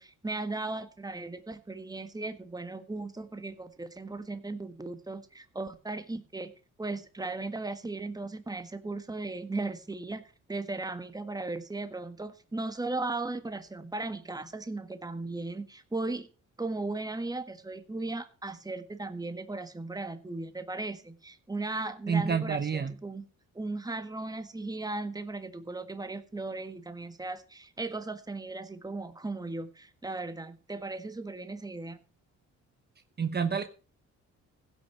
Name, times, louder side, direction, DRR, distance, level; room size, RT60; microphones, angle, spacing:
voice 1, 0.0-6.5 6.8-10.2 10.5-16.3 16.6-23.2 23.5-32.0, right 2 dB, 10° right, 9 dB, 1.5 m, -37 dB
voice 2, 22.1-22.9 33.2-33.6, right 6 dB, 35° right, 9 dB, 1.0 m, -28 dB
16.0 x 6.2 x 5.9 m, 0.37 s
cardioid pair, 90°, 30 cm